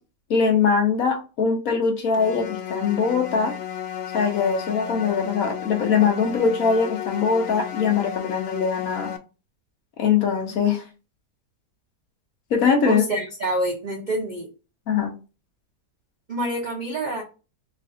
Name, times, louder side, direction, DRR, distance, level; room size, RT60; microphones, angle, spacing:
voice 1, 0.3-3.5 4.1-9.1 10.0-10.8 12.5-13.0 14.9-15.1, left 6 dB, 65° left, 1.2 m, -22 dB
sound 1, 2.1-9.2, left 9 dB, 85° left, 1.2 m, -33 dB
voice 2, 12.8-14.5 16.3-17.2, right 1 dB, 50° right, 0.5 m, -27 dB
3.2 x 2.4 x 3.7 m
omnidirectional pair, 1.7 m